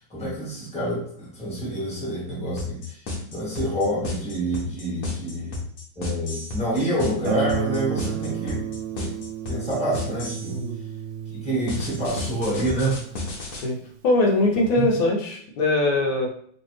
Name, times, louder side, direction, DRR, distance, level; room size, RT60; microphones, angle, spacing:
voice 1, 0.1-2.9 3.3-5.6 6.0-8.6 8.9-9.1 9.5-10.5 11.4-13.0 14.8-14.9, right 1 dB, 5° left, -6 dB, 1.2 m, -27 dB
sound 1, 2.6-10.6 11.7-13.6, left 3 dB, 55° left, 1.3 m, -32 dB
Guitar, 7.2-14.0, right 10 dB, 85° right, 1.3 m, -33 dB
voice 2, 14.0-16.3, left 2 dB, 90° left, -1 dB, 1.6 m, -22 dB
3.2 x 3.1 x 3.1 m, 0.62 s
omnidirectional pair, 2.0 m